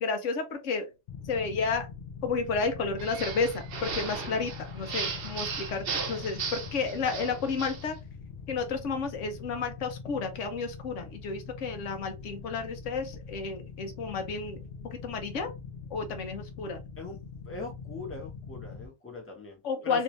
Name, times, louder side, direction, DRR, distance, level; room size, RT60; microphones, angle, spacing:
voice 1, 0.0-0.9 1.2-1.9 2.2-8.0 8.5-14.6 14.8-15.5 15.9-16.8 19.6-20.0, left 4 dB, 90° left, 1.1 m, -31 dB
sound 1, 1.1-18.9, left 5 dB, 60° left, 0.5 m, -43 dB
sound 2, 3.0-7.9, right 5 dB, 55° right, 0.9 m, -36 dB
voice 2, 17.4-20.0, left 3 dB, 10° left, 0.9 m, -41 dB
3.1 x 2.6 x 3.0 m
omnidirectional pair, 1.2 m